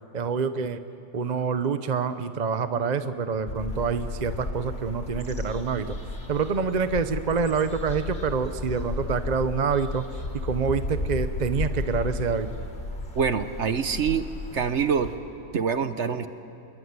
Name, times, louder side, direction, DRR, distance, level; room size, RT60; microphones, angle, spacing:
voice 1, 0.1-0.8 1.1-6.0 6.3-10.0 10.4-12.5, right 5 dB, 35° right, 10 dB, 0.8 m, -27 dB
sound 1, 3.5-15.2, left 2 dB, 45° left, 3.0 m, -34 dB
voice 2, 13.2-15.1 15.5-16.3, right 6 dB, 50° right, 10 dB, 1.1 m, -25 dB
26.5 x 22.5 x 9.7 m, 2.6 s
omnidirectional pair, 1.7 m